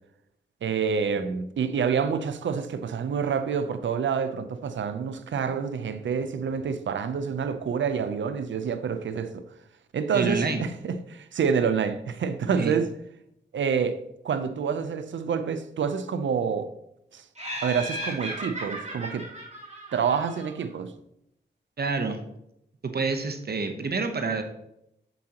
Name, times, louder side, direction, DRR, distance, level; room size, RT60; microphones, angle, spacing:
voice 1, 0.6-9.4 9.9-12.9 13.5-16.7 17.1-17.2 17.6-19.3 19.9-20.9, right 6 dB, 80° right, 0.6 m, -27 dB
voice 2, 10.1-10.6 12.6-12.8 21.8-22.2 22.9-24.4, right 4 dB, 55° right, 0.9 m, -28 dB
Laughter, 17.4-20.7, right 1 dB, 35° right, 2.8 m, -36 dB
7.8 x 7.6 x 2.9 m
cardioid pair, 50°, 19 cm